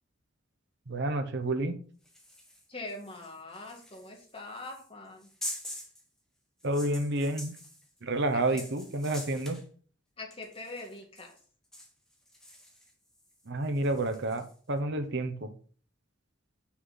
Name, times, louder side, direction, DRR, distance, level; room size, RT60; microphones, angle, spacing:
voice 1, 0.9-1.7 6.6-7.5 8.0-9.6 13.4-15.5, right 2 dB, 60° right, 8 dB, 1.0 m, -30 dB
sound 1, 2.0-6.0 6.6-9.6 10.3-11.4 11.7-14.5, left 1 dB, 5° left, 1.2 m, -46 dB
voice 2, 2.7-5.3 8.3-8.6 10.2-11.4, left 2 dB, 30° left, 0 dB, 1.9 m, -43 dB
6.1 x 5.7 x 4.0 m, 0.43 s
head